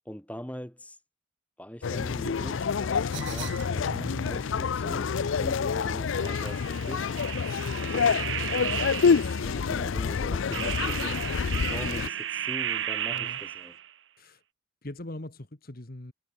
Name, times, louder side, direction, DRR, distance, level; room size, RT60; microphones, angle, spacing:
voice 1, 0.1-1.0 1.6-7.4 7.9-8.3 9.4-11.2 11.5-13.8, equal, 5° left, 3.7 m, -42 dB
sound 1, 1.8-12.1, left 6 dB, 70° left, 0.4 m, -27 dB
sound 2, 3.1-4.4 6.2-9.5 10.5-13.9, right 10 dB, 60° right, 0.8 m, -34 dB
sound 3, 8.6-13.5, left 3 dB, 85° left, 4.0 m, -46 dB
voice 2, 10.4-10.8 13.1-13.4 14.2-14.4 14.8-16.1, left 1 dB, 45° left, 1.6 m, -43 dB
head